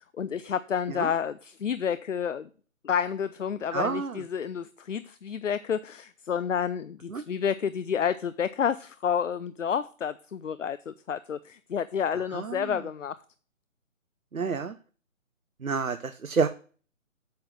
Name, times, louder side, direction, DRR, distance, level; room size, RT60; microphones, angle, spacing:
voice 1, 0.0-2.5 2.8-13.2, left 7 dB, 65° left, 0.6 m, -30 dB
voice 2, 3.7-4.1 7.1-7.2 12.3-12.7 14.3-14.7 15.6-16.5, right 5 dB, 85° right, 0.8 m, -28 dB
8.6 x 5.9 x 6.4 m
figure-of-eight pair, 145°, 41 cm